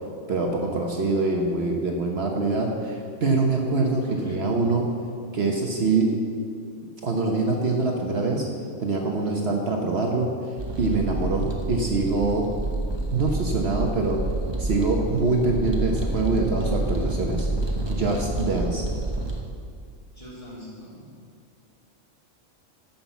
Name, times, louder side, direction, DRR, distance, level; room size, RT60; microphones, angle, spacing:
voice 1, 0.3-4.8 5.3-6.1 7.0-8.4 8.8-10.5 10.8-12.4 13.1-14.2 14.6-17.5 17.9-18.9, right 3 dB, 55° right, 0 dB, 1.3 m, -24 dB
voice 2, 4.1-4.5 20.1-21.1, left 1 dB, 25° left, -8 dB, 3.6 m, -43 dB
sound 1, 10.6-19.4, right 2 dB, 20° right, 1.1 m, -28 dB
13.5 x 5.9 x 7.0 m, 2.2 s
omnidirectional pair, 1.3 m